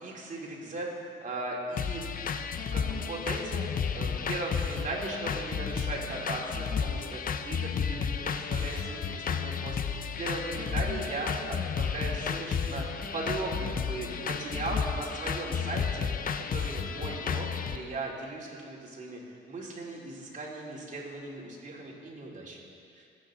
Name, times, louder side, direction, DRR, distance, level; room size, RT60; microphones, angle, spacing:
voice 1, 0.0-2.1 2.7-3.7 3.9-11.4 11.8-16.1 16.4-19.2 19.5-22.6 22.9-23.0, right 2 dB, 40° right, -3 dB, 3.2 m, -37 dB
sound 1, 1.8-17.8, left 6 dB, 45° left, 0.7 m, -32 dB
20.0 x 8.6 x 3.9 m, 2.3 s
cardioid pair, 90°, 20 cm